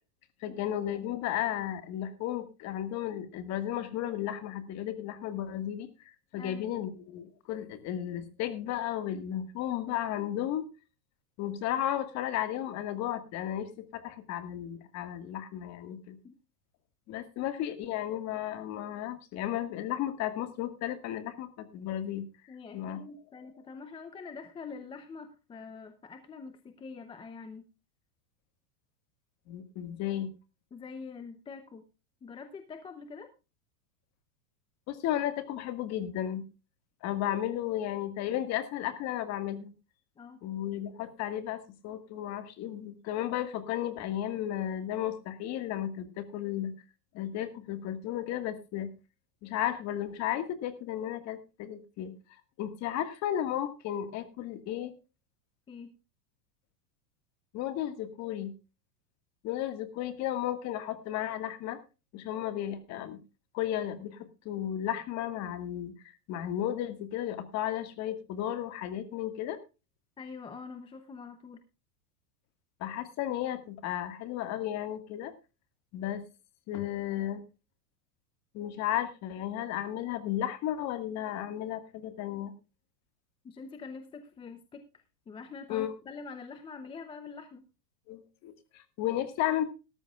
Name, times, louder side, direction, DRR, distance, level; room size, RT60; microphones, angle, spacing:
voice 1, 0.4-5.9 6.3-10.6 11.4-16.2 17.1-22.2 22.7-23.0 29.5-30.3 34.9-36.4 37.0-39.7 40.4-46.7 47.1-48.9 49.4-52.1 52.6-54.9 57.5-58.5 59.4-61.8 62.1-63.2 63.5-65.9 66.3-69.6 72.8-75.3 75.9-76.2 76.7-77.4 78.5-82.5 85.7-85.9 88.1-89.6, left 11 dB, 35° left, 10 dB, 1.8 m, -34 dB
voice 2, 6.4-6.7 16.2-16.3 22.5-27.6 30.7-31.8 32.2-33.3 40.2-40.4 55.7-55.9 70.2-71.6 83.4-87.6, left 5 dB, 10° left, 9 dB, 0.7 m, -45 dB
17.5 x 13.5 x 2.4 m, 0.29 s
supercardioid pair, 155°, 47 cm